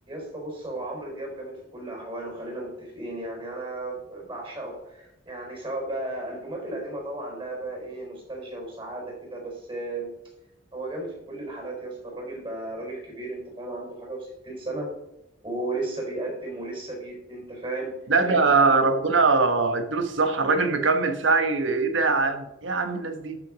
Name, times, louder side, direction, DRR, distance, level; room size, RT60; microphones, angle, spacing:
voice 1, 0.1-10.1 10.7-14.9 15.4-18.0 18.3-18.7, right 2 dB, 30° right, 0 dB, 4.5 m, -35 dB
voice 2, 18.1-23.4, right 4 dB, 85° right, 7 dB, 1.3 m, -22 dB
12.0 x 6.1 x 5.1 m, 0.85 s
head